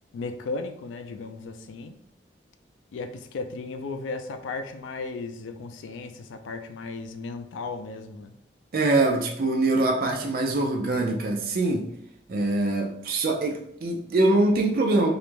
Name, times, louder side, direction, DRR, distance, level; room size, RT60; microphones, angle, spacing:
voice 1, 0.1-1.9 2.9-8.3, left 3 dB, 90° left, 0.3 m, -35 dB
voice 2, 8.7-11.9 12.3-15.1, right 2 dB, 50° right, 0.4 m, -23 dB
2.4 x 2.1 x 3.0 m
head